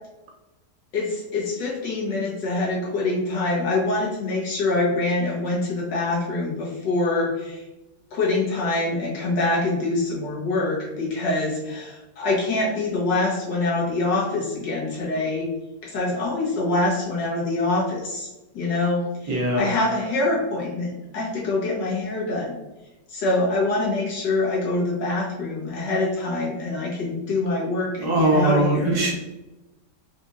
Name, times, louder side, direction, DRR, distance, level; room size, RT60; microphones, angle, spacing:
voice 1, 0.9-7.6 8.1-15.5 15.8-18.3 18.5-22.5 23.1-29.0, left 2 dB, 80° left, -4 dB, 2.0 m, -25 dB
voice 2, 19.3-19.7 28.0-29.1, right 2 dB, 50° right, -1 dB, 1.2 m, -21 dB
5.1 x 3.1 x 2.6 m, 1.0 s
omnidirectional pair, 1.9 m